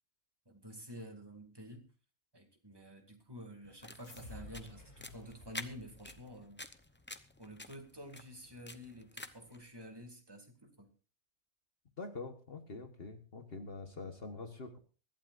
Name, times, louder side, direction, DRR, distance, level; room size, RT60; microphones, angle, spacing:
voice 1, 0.5-1.9 2.3-6.6 7.4-10.9, equal, 15° right, 3 dB, 2.2 m, -50 dB
sound 1, 3.6-9.6, left 2 dB, 10° left, 0.5 m, -50 dB
sound 2, 4.0-6.7, left 2 dB, 65° left, 2.6 m, -53 dB
voice 2, 12.0-14.8, left 3 dB, 50° left, 7 dB, 1.5 m, -45 dB
24.5 x 12.0 x 2.5 m, 0.37 s
omnidirectional pair, 1.4 m